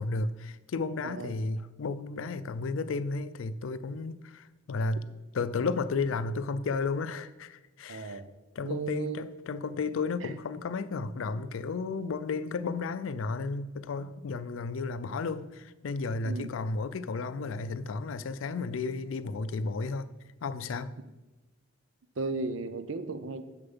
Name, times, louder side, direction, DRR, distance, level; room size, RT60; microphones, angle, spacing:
voice 1, 0.0-5.0 5.3-8.2 8.6-20.1 20.4-20.9, left 4 dB, 85° left, 0.4 m, -33 dB
voice 2, 7.9-8.3 8.6-9.2 10.2-10.3 16.2-16.5 22.2-23.4, right 3 dB, 75° right, 0.6 m, -35 dB
6.8 x 6.7 x 5.4 m
head